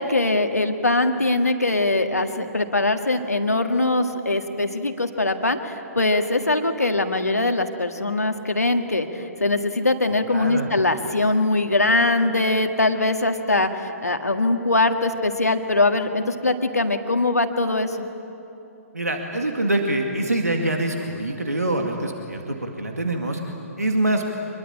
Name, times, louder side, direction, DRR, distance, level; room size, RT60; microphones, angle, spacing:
voice 1, 0.0-9.1 9.4-18.1, left 2 dB, 85° left, 6 dB, 1.7 m, -22 dB
voice 2, 10.3-10.7 18.9-24.2, right 1 dB, 85° right, 3 dB, 2.1 m, -25 dB
25.0 x 22.0 x 8.8 m, 2.8 s
figure-of-eight pair, 125°, 8 cm